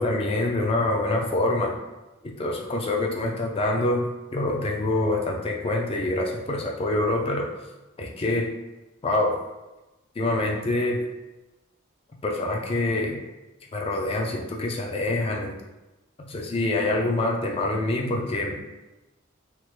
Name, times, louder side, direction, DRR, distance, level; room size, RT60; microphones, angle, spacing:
voice 1, 0.0-1.8 2.2-4.1 4.3-7.5 8.0-8.5 9.0-9.4 10.2-11.0 12.2-13.2 13.7-15.6 16.3-18.6, left 2 dB, 30° left, 0 dB, 0.4 m, -25 dB
3.0 x 2.0 x 3.1 m, 1.0 s
head